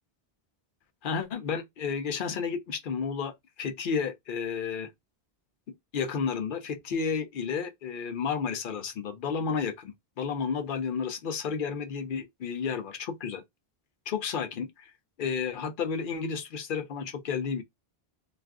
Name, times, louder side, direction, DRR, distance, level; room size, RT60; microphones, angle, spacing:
voice 1, 1.0-4.9 5.9-9.9 10.2-13.4 14.1-14.9 15.2-17.6, left 6 dB, 65° left, 0.7 m, -32 dB
2.4 x 2.4 x 3.3 m
omnidirectional pair, 1.0 m